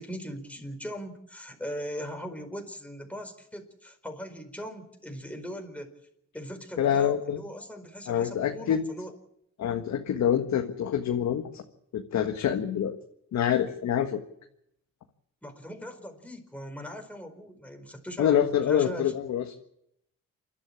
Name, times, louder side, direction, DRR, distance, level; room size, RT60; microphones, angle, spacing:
voice 1, 0.0-5.9 6.3-9.2 15.4-19.1, equal, 5° left, 4 dB, 4.7 m, -40 dB
voice 2, 6.8-7.4 8.1-8.8 9.6-11.6 11.9-12.9 13.3-14.2 18.2-19.4, left 9 dB, 65° left, 4 dB, 1.7 m, -26 dB
28.5 x 12.0 x 8.7 m, 0.78 s
cardioid pair, 90°, 30 cm